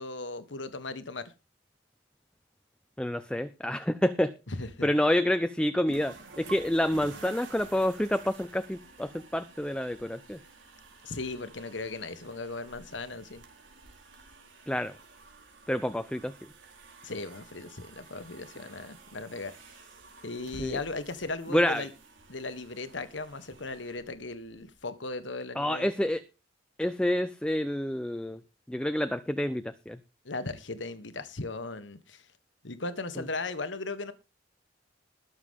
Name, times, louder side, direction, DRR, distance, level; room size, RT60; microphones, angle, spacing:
voice 1, 0.0-1.3 4.5-4.9 11.0-13.4 17.0-19.5 20.2-21.9 22.3-25.9 30.2-32.2 32.6-34.1, left 3 dB, 70° left, 1.5 m, -37 dB
voice 2, 3.0-4.3 4.8-10.4 14.7-15.0 15.7-16.4 20.6-20.8 21.5-21.9 25.6-26.2 26.8-28.4 28.7-30.0, left 1 dB, 5° left, 0.7 m, -28 dB
sound 1, 5.9-24.8, right 4 dB, 80° right, 3.9 m, -51 dB
21.0 x 7.0 x 3.7 m
head